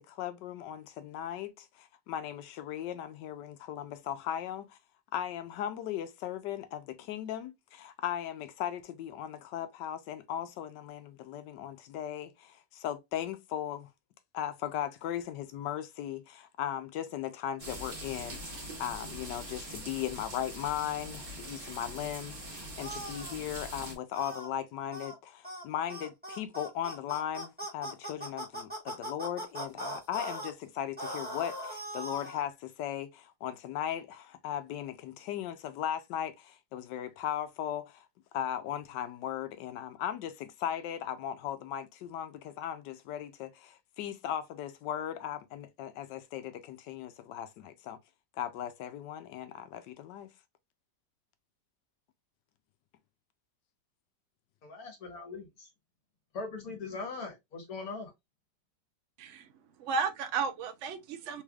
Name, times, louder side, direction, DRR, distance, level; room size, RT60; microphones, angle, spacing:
voice 1, 0.0-4.8 5.1-13.9 14.3-38.1 38.3-48.0 48.4-50.3, left 10 dB, 80° left, 1.2 m, -37 dB
sound 1, 17.6-23.9, right 1 dB, 30° right, 1.2 m, -43 dB
sound 2, 22.8-23.3 24.1-24.5 24.9-25.2 25.4-25.6 25.9-30.5 31.0-32.4, right 1 dB, 5° right, 1.2 m, -40 dB
voice 2, 54.6-55.7 56.3-58.1, left 3 dB, 60° left, 1.6 m, -40 dB
voice 3, 59.2-61.4, right 5 dB, 75° right, 0.7 m, -34 dB
3.5 x 3.2 x 2.3 m
omnidirectional pair, 1.9 m